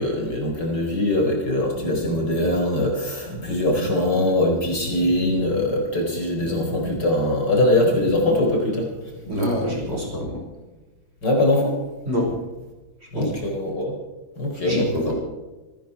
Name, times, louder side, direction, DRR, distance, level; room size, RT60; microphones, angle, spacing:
voice 1, 0.0-8.9 9.6-9.7 11.2-11.8 13.1-13.9 14.4-15.1, left 1 dB, 60° left, 0 dB, 5.0 m, -22 dB
sound 1, 1.8-9.3, equal, 80° left, 3.3 m, -36 dB
voice 2, 9.3-10.4 12.1-12.3 13.1-13.3 14.6-15.1, equal, 30° right, -1 dB, 5.9 m, -25 dB
27.0 x 10.5 x 4.7 m, 1.2 s
omnidirectional pair, 2.2 m